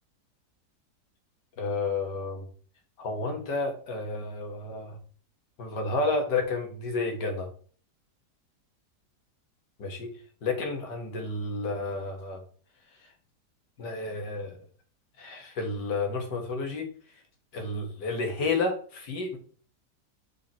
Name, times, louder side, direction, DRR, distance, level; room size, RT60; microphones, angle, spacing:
voice 1, 1.6-2.4 3.0-5.0 5.6-7.5 9.8-10.1 10.4-12.4 13.8-14.6 15.2-16.9 17.5-19.4, left 3 dB, 85° left, 4 dB, 2.2 m, -31 dB
7.0 x 5.2 x 4.2 m, 0.43 s
omnidirectional pair, 1.8 m